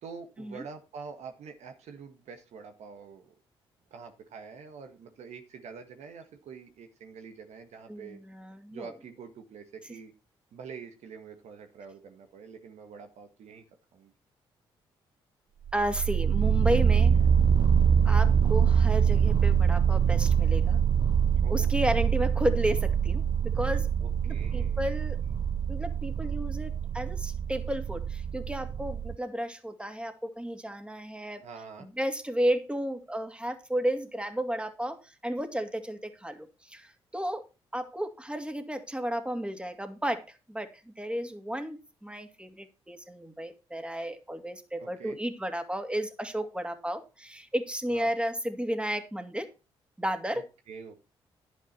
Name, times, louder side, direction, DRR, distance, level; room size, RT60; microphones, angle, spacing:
voice 1, 0.0-3.4 3.9-8.2 8.7-10.1 10.5-13.6 13.9-14.1 21.4-21.8 24.0-24.8 31.4-31.9 44.8-45.2 47.9-48.2 50.4-51.0, right 5 dB, 70° right, 6 dB, 1.6 m, -46 dB
voice 2, 7.9-8.9 15.7-17.1 18.0-20.8 21.5-23.9 24.2-25.2 25.7-31.4 31.8-37.4 37.7-40.2 40.5-49.5 50.0-50.4, equal, 10° right, 7 dB, 2.6 m, -33 dB
sound 1, 15.7-29.2, right 7 dB, 40° right, 0.6 m, -25 dB
11.0 x 9.6 x 4.1 m, 0.28 s
hypercardioid pair, 45°, 12 cm